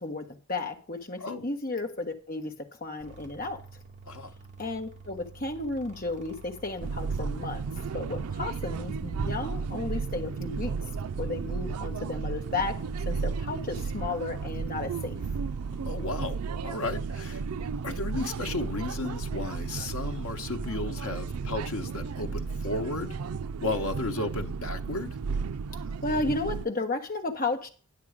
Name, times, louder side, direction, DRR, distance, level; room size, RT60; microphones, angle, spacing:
voice 1, 0.0-3.8 4.6-7.6 7.9-10.7 11.2-12.8 13.0-15.2 26.0-27.7, left 3 dB, 40° left, 1.3 m, -33 dB
sound 1, 3.0-19.8, right 3 dB, 30° right, 2.0 m, -48 dB
Ride on Montmartre funicular Paris France, 6.8-26.7, right 5 dB, 90° right, 0.4 m, -33 dB
voice 2, 15.8-17.4 17.8-23.2 23.6-25.1, left 2 dB, 90° left, 0.9 m, -34 dB
11.0 x 6.7 x 5.0 m
head